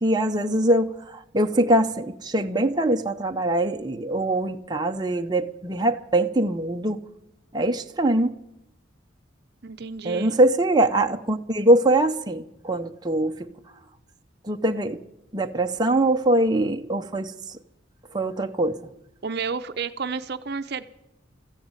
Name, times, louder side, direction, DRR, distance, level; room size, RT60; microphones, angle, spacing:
voice 1, 0.0-7.0 7.5-8.4 10.0-13.5 14.4-15.0 15.3-17.3 18.1-18.9, right 1 dB, 20° right, 4 dB, 0.8 m, -23 dB
voice 2, 9.6-10.4 19.2-20.8, right 5 dB, 55° right, 9 dB, 0.7 m, -31 dB
14.5 x 10.5 x 9.0 m, 0.85 s
head